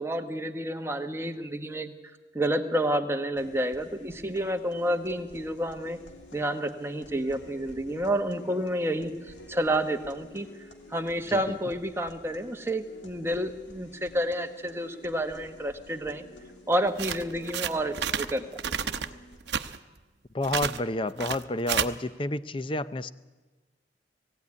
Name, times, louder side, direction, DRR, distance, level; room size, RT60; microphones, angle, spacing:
voice 1, 0.0-1.9 2.3-6.0 6.3-9.1 9.5-10.5 10.9-16.2 16.7-19.0, right 1 dB, 15° right, 6 dB, 1.2 m, -29 dB
sound 1, 3.4-19.4, left 1 dB, 85° left, 2.8 m, -50 dB
sound 2, 16.9-18.3 18.6-19.1 19.4-19.8 20.4-20.8 21.2-21.9, right 8 dB, 65° right, 0.8 m, -30 dB
voice 2, 20.3-23.1, left 2 dB, 30° left, 14 dB, 0.6 m, -30 dB
19.5 x 15.5 x 9.7 m, 1.3 s
head